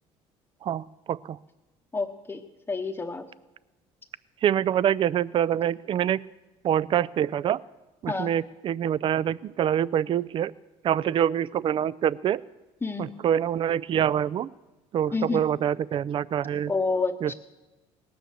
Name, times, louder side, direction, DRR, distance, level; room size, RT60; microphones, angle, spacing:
voice 1, 0.6-1.4 4.4-6.2 6.6-7.6 8.0-10.5 10.8-12.4 13.0-14.5 14.9-16.7 17.2-17.3, right 10 dB, 40° right, 21 dB, 0.4 m, -25 dB
voice 2, 1.9-2.4 2.7-3.2 8.1-8.3 12.8-13.1 15.1-15.4 16.7-17.3, left 4 dB, 15° left, 6 dB, 0.9 m, -28 dB
18.5 x 9.1 x 6.8 m, 1.1 s
cardioid pair, 105°, 13 cm